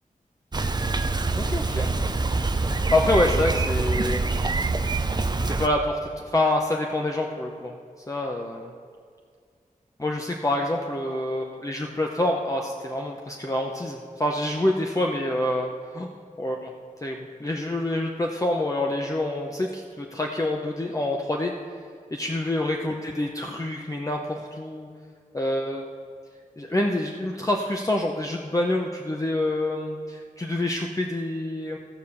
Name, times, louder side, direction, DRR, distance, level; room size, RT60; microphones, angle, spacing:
Bicycle, 0.5-5.7, right 3 dB, 30° right, 0.6 m, -25 dB
voice 1, 1.4-1.9 2.7-4.2 5.4-6.0 6.3-7.8 8.1-8.7 10.0-16.1 16.4-16.7 17.0-21.5 22.1-24.9 25.3-25.9 26.6-31.8, left 1 dB, 25° left, 0 dB, 0.7 m, -27 dB
15.0 x 5.0 x 7.0 m, 2.1 s
wide cardioid pair, 85°, 14 cm